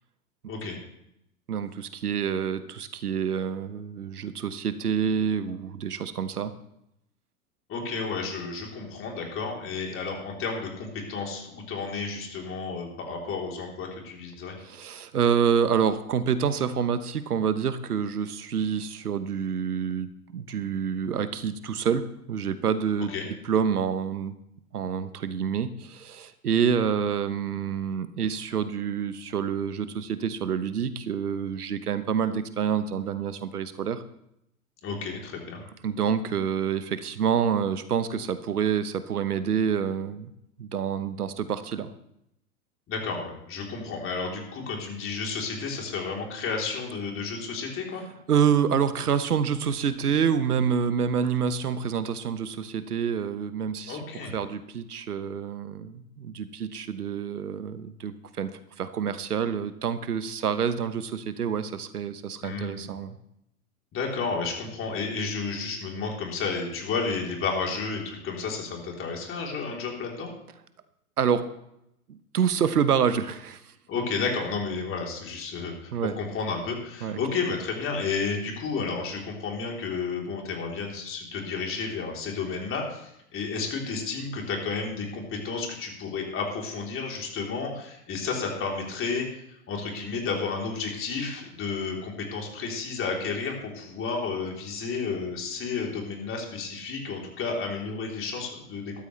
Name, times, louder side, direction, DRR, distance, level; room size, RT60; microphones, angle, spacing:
voice 1, 1.5-6.5 14.6-23.1 23.4-24.3 24.7-34.0 35.8-40.3 40.6-41.9 48.3-63.2 71.2-71.5 72.1-73.7 75.9-76.2 77.0-77.2, right 7 dB, 85° right, 12 dB, 1.1 m, -27 dB
voice 2, 7.7-14.6 23.1-23.2 34.8-35.6 42.9-48.0 53.9-54.3 62.4-62.9 63.9-70.3 73.9-99.0, left 4 dB, 30° left, 0 dB, 3.5 m, -32 dB
13.5 x 13.0 x 3.3 m, 0.79 s
hypercardioid pair, 105°, 44 cm